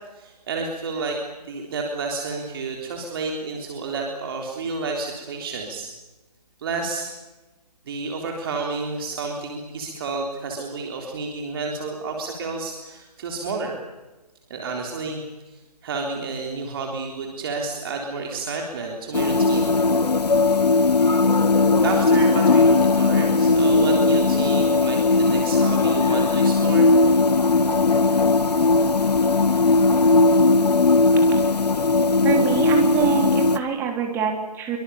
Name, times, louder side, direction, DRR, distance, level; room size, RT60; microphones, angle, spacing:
voice 1, 0.1-5.9 6.6-7.1 7.9-13.8 14.5-19.7 21.8-26.9, right 4 dB, 35° right, 1 dB, 3.7 m, -30 dB
sound 1, 19.1-33.6, left 3 dB, 75° left, 1.6 m, -18 dB
voice 2, 32.2-34.8, right 7 dB, 10° right, 3 dB, 3.3 m, -24 dB
26.0 x 24.0 x 7.0 m, 1.1 s
figure-of-eight pair, 155°, 21 cm